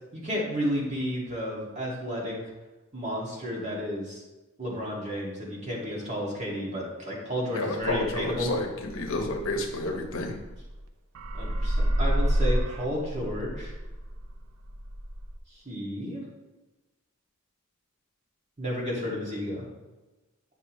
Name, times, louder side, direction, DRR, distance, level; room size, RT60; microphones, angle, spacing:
voice 1, 0.1-2.4 2.9-4.2 4.6-8.5 11.3-13.7 15.7-16.2 18.6-19.6, equal, 35° right, -4 dB, 2.1 m, -32 dB
voice 2, 7.5-10.3, left 2 dB, 65° left, 1 dB, 1.0 m, -30 dB
sound 1, 8.0-10.9 11.2-15.4, equal, 75° right, 0.6 m, -29 dB
9.7 x 5.3 x 3.1 m, 1.2 s
head